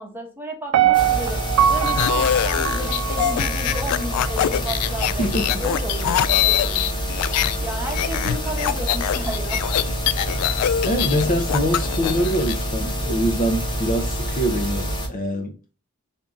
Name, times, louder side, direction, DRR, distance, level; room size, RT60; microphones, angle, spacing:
voice 1, 0.0-1.4 1.7-6.9 7.5-9.6, equal, 10° right, 0.9 m, -33 dB
Piano, 0.7-3.8 4.3-4.4, right 10 dB, 80° right, 0.4 m, -21 dB
sound 1, 0.9-15.1, equal, 20° left, 1.0 m, -27 dB
sound 2, 1.7-7.6 7.9-12.6, left 11 dB, 85° left, 0.3 m, -24 dB
voice 2, 5.2-5.6 10.8-15.5, equal, 40° left, 0.6 m, -24 dB
3.5 x 2.7 x 3.6 m
head